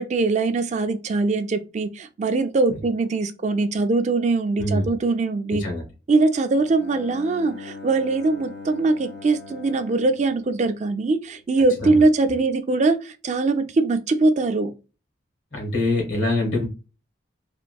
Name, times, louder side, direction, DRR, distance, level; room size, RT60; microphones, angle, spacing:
voice 1, 0.0-5.6 6.1-14.7, right 3 dB, 35° right, 0.3 m, -22 dB
voice 2, 4.6-4.9 5.5-5.8 11.8-12.0 15.5-16.6, left 1 dB, 85° left, 1.5 m, -24 dB
Bowed string instrument, 6.6-11.4, left 4 dB, 60° left, 0.4 m, -41 dB
3.7 x 2.5 x 2.3 m
head